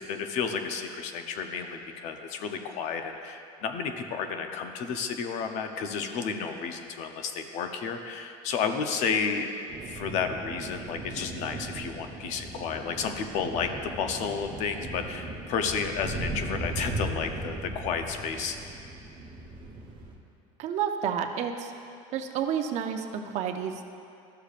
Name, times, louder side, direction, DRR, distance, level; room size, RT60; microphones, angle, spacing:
voice 1, 0.0-9.5 9.8-18.6, left 6 dB, 60° left, 6 dB, 0.6 m, -32 dB
sound 1, 9.7-20.2, right 2 dB, 35° right, 1.0 m, -38 dB
voice 2, 20.6-21.7 22.1-24.0, right 8 dB, 55° right, 6 dB, 0.6 m, -30 dB
13.0 x 6.7 x 2.5 m, 2.5 s
cardioid pair, 145°, 14 cm